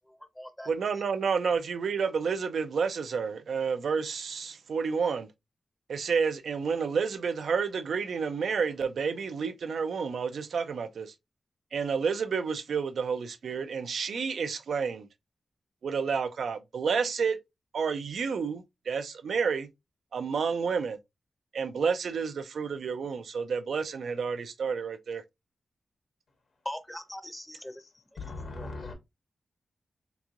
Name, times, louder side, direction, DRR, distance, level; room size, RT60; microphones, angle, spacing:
voice 1, 0.1-0.7 26.6-27.7 28.6-28.9, equal, 5° left, 0.5 m, -41 dB
voice 2, 0.7-5.3 5.9-11.1 11.7-15.1 15.8-17.4 17.7-19.7 20.1-21.0 21.5-25.2, right 5 dB, 85° right, 0.4 m, -30 dB
voice 3, 28.2-28.9, left 3 dB, 75° left, 0.9 m, -39 dB
3.5 x 2.9 x 2.4 m
wide cardioid pair, 95°, 0 cm